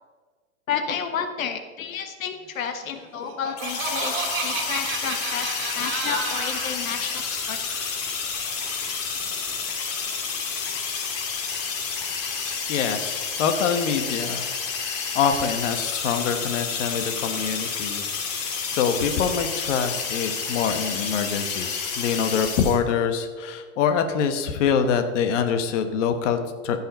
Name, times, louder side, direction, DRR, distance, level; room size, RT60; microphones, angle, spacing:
voice 1, 0.7-7.6, left 7 dB, 85° left, 6 dB, 1.3 m, -31 dB
Laughter, 3.0-6.8, right 4 dB, 30° right, 2.7 m, -31 dB
sound 1, 3.6-22.8, left 5 dB, 35° left, 2.2 m, -30 dB
voice 2, 12.7-14.5 15.1-26.9, left 7 dB, 65° left, 8 dB, 1.3 m, -25 dB
15.0 x 5.6 x 5.3 m, 1.4 s
hypercardioid pair, 125°, 40 cm